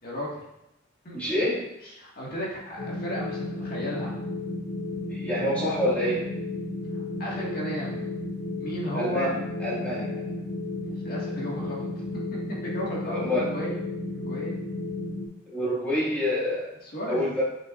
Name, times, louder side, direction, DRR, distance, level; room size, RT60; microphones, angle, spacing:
voice 1, 0.0-0.4 1.0-1.3 1.8-4.1 6.9-8.1 8.6-9.3 10.8-11.9 12.5-13.8 14.1-14.6 16.8-17.4, equal, 50° left, -5 dB, 1.9 m, -34 dB
voice 2, 1.1-1.6 5.1-6.2 8.9-10.3 13.0-13.5 15.5-16.7 17.1-17.4, equal, 5° left, -8 dB, 2.1 m, -27 dB
sound 1, 2.8-15.3, left 2 dB, 75° left, 1.4 m, -33 dB
7.2 x 6.4 x 2.6 m, 0.87 s
head